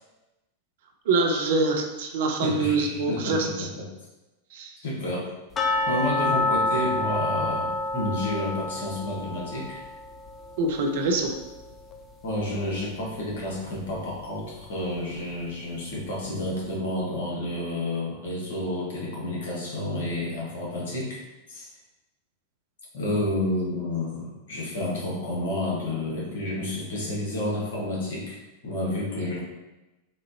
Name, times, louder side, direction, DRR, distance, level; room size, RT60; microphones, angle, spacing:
voice 1, 1.1-3.7 4.5-4.7 10.6-11.3, right 3 dB, 55° right, 3 dB, 0.5 m, -25 dB
voice 2, 2.4-3.5 3.8-3.9 4.8-5.3 5.9-9.8 12.2-21.2 21.5-21.7 22.9-28.4 28.6-29.4, left 1 dB, 60° left, -4 dB, 1.2 m, -30 dB
sound 1, 5.6-12.4 12.7-12.8 13.3-13.4 13.9-14.0, left 2 dB, 25° left, 0.4 m, -29 dB
4.2 x 2.5 x 2.7 m, 1.0 s
figure-of-eight pair, 90°, 0 cm